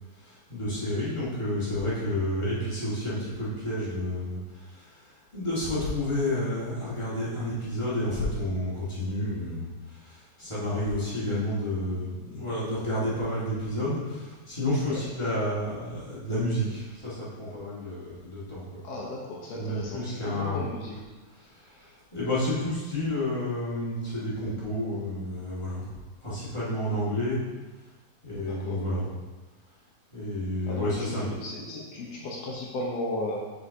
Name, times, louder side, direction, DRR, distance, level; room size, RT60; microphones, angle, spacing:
voice 1, 0.1-18.8 19.4-20.6 21.3-25.9 26.2-27.4 28.2-29.1 30.1-31.3, left 1 dB, 20° left, -9 dB, 0.9 m, -30 dB
voice 2, 18.8-21.0 28.4-28.8 30.6-33.4, left 2 dB, 70° left, -2 dB, 1.6 m, -35 dB
9.6 x 5.1 x 2.8 m, 1.2 s
omnidirectional pair, 4.0 m